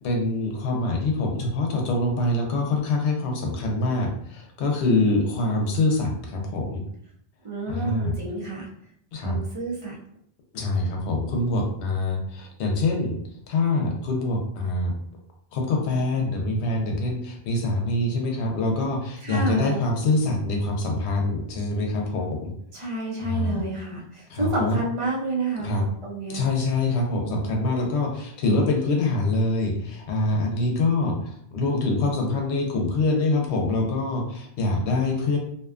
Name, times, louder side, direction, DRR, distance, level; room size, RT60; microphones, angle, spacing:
voice 1, 0.0-6.8 7.7-8.1 9.1-9.4 10.5-13.2 13.5-14.9 15.5-22.5 23.2-23.6 24.3-24.8 25.6-25.8 26.3-31.2 31.5-35.4, left 2 dB, 90° left, 1 dB, 0.9 m, -25 dB
voice 2, 7.4-8.7 9.2-10.0 19.2-19.8 22.7-25.7 26.0-26.4, right 2 dB, 35° right, -3 dB, 0.6 m, -29 dB
2.5 x 2.2 x 2.4 m, 0.68 s
omnidirectional pair, 1.1 m